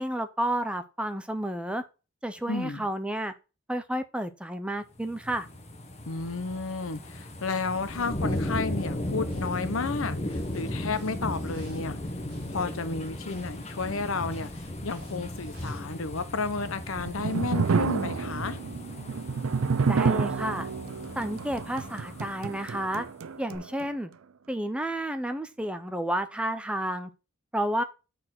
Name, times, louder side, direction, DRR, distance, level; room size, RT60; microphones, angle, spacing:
voice 1, 0.0-1.8 2.2-3.3 3.7-5.5 19.9-20.7 21.2-23.0 23.4-24.1 24.5-27.1 27.5-27.8, right 1 dB, 5° right, 0.5 m, -31 dB
voice 2, 2.5-2.9 6.1-12.0 12.5-14.5 14.8-18.6, left 4 dB, 75° left, 0.9 m, -32 dB
sound 1, 5.0-23.1 23.5-23.6, left 1 dB, 30° left, 1.3 m, -36 dB
sound 2, 7.8-15.8, right 1 dB, 55° right, 3.1 m, -50 dB
sound 3, 16.8-23.9, right 5 dB, 80° right, 0.5 m, -29 dB
6.7 x 4.3 x 5.8 m
head